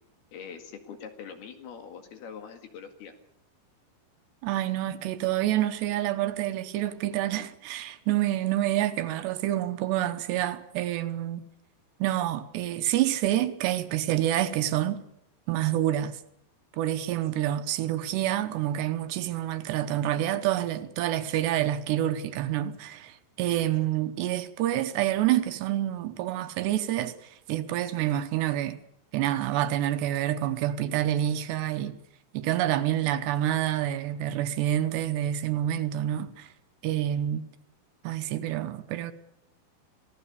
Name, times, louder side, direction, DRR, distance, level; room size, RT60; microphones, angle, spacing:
voice 1, 0.3-3.1, left 7 dB, 60° left, 3.6 m, -43 dB
voice 2, 4.4-11.4 12.0-15.0 15.5-16.2 16.8-28.8 29.1-32.0 32.3-36.5 36.8-37.4 38.0-39.1, right 12 dB, 70° right, 2.9 m, -28 dB
26.0 x 17.5 x 7.0 m
omnidirectional pair, 5.6 m